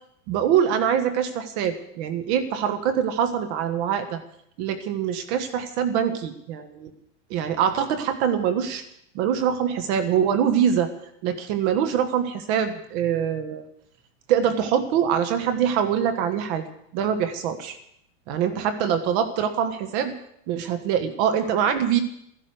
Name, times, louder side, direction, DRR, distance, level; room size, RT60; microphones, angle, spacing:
voice 1, 0.3-4.2 4.6-6.9 7.3-8.8 9.1-10.9 11.2-13.7 14.3-16.6 16.9-17.8 18.3-20.1 20.5-22.0, right 8 dB, 55° right, 10 dB, 1.5 m, -24 dB
14.0 x 11.5 x 7.7 m, 0.72 s
supercardioid pair, 125°, 40 cm